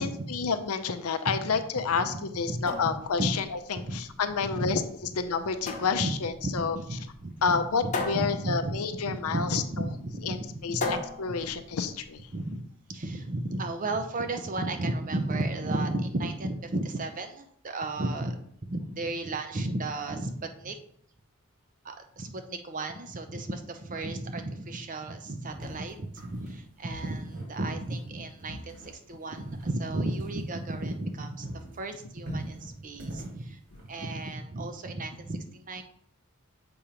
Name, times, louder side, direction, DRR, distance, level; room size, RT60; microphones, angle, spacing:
voice 1, 0.0-4.8 5.2-6.8 7.4-9.9 10.2-12.2, left 5 dB, 75° left, 9 dB, 0.6 m, -29 dB
voice 2, 1.9-2.6 3.2-3.3 3.8-4.0 4.5-4.7 6.0-6.2 6.4-8.8 9.1-10.9 12.3-20.8 21.8-33.6 33.9-35.8, right 2 dB, 35° right, 7 dB, 0.6 m, -33 dB
sound 1, 2.4-12.4, left 3 dB, 35° left, 1.0 m, -38 dB
sound 2, 25.5-31.2 31.4-34.3, equal, 90° right, 2.7 m, -45 dB
7.0 x 3.0 x 5.0 m, 0.66 s
head